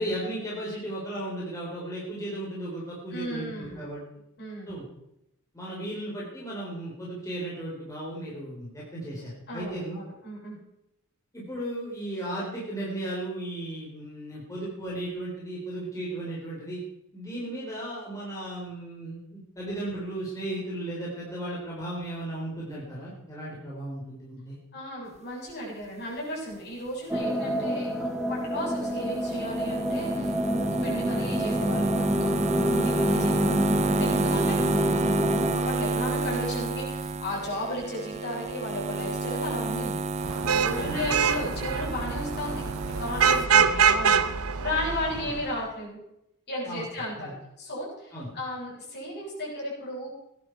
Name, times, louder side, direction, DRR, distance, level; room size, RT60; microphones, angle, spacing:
voice 1, 0.0-4.0 4.7-4.8 5.5-10.0 11.3-16.8 17.1-24.6 40.7-41.1 43.5-43.7 46.6-46.8 47.2-47.3 48.1-48.3, right 1 dB, 15° left, -6 dB, 4.1 m, -35 dB
voice 2, 3.1-3.9 4.4-4.8 9.5-10.6 24.7-32.3 32.6-34.6 35.5-42.6 43.0-44.2 44.6-46.0 46.5-47.3 47.6-50.1, left 1 dB, 50° left, -4 dB, 7.7 m, -35 dB
sound 1, 27.1-35.6, equal, 5° right, 1.3 m, -27 dB
sound 2, 28.6-43.5, right 3 dB, 30° right, 0.6 m, -30 dB
Vehicle horn car horn honking / Traffic noise roadway noise, 40.2-45.5, right 6 dB, 70° right, 0.9 m, -25 dB
19.5 x 11.0 x 4.7 m, 0.83 s
head